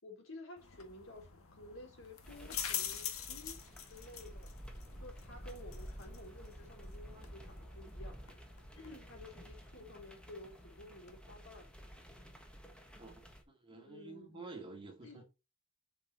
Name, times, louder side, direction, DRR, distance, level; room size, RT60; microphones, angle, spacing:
voice 1, 0.0-4.5 5.0-8.2 8.7-11.7 13.7-14.4 15.0-15.2, left 1 dB, 70° left, 4.4 m, -53 dB
sound 1, 0.6-11.2, left 9 dB, 90° left, 1.7 m, -46 dB
sound 2, 2.2-13.4, equal, 5° left, 1.5 m, -51 dB
sound 3, 4.4-9.0, left 2 dB, 55° left, 4.2 m, -68 dB
voice 2, 13.0-15.2, right 3 dB, 25° right, 2.5 m, -50 dB
7.1 x 6.4 x 4.4 m
head